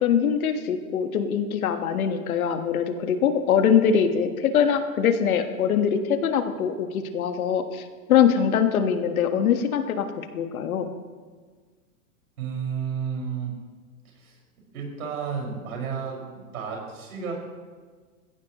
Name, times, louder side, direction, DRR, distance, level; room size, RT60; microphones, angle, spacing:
voice 1, 0.0-7.8 8.1-10.1 10.3-10.9, left 7 dB, 70° left, 7 dB, 1.6 m, -23 dB
voice 2, 12.4-13.5 14.1-14.4 14.7-17.3, right 6 dB, 70° right, -1 dB, 5.7 m, -32 dB
21.5 x 15.5 x 3.1 m, 1.5 s
hypercardioid pair, 115°, 44 cm